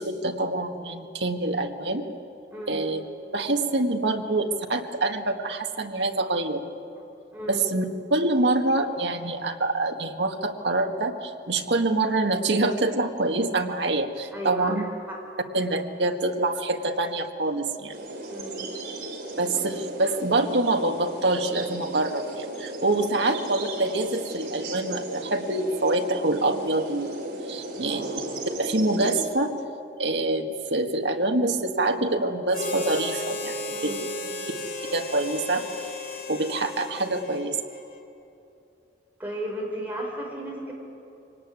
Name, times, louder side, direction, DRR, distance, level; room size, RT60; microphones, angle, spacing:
voice 1, 0.0-2.0 2.7-3.1 3.3-6.6 7.5-14.8 15.5-18.0 19.4-27.2 27.5-28.3 28.6-29.5 30.0-33.9 34.9-35.7 36.3-37.6, right 2 dB, 80° right, 5 dB, 1.7 m, -26 dB
voice 2, 2.5-2.9 7.3-7.6 14.3-14.7 15.1-15.2 18.3-18.6 22.8-23.1 28.0-28.1 33.7-34.3 39.2-40.7, right 1 dB, 10° right, -2 dB, 5.2 m, -35 dB
sound 1, 17.9-29.2, right 2 dB, 65° right, 3.8 m, -35 dB
Harmonica, 32.5-38.0, left 2 dB, 50° left, 2.6 m, -34 dB
25.0 x 18.5 x 9.7 m, 2.8 s
head